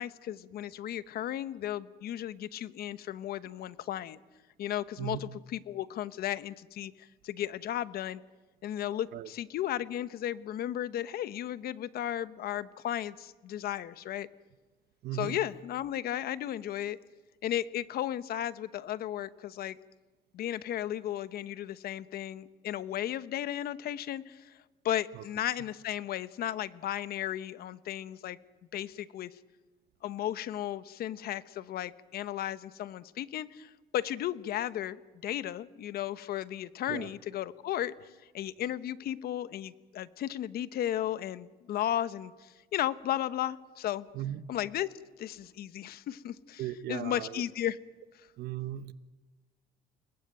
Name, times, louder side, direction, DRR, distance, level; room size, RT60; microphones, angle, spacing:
voice 1, 0.0-4.2 4.6-8.2 8.6-14.3 15.1-17.0 17.4-19.8 20.3-24.5 24.8-28.4 28.7-29.3 30.0-37.9 38.3-44.1 44.5-44.9 45.2-46.6 46.9-47.8, left 12 dB, 65° left, 1.1 m, -35 dB
voice 2, 15.0-15.4 25.1-25.2 36.9-37.1 44.1-44.4 46.6-47.4 48.4-48.9, right 12 dB, 75° right, 1.2 m, -37 dB
29.5 x 20.5 x 9.2 m
cardioid pair, 110°, 17 cm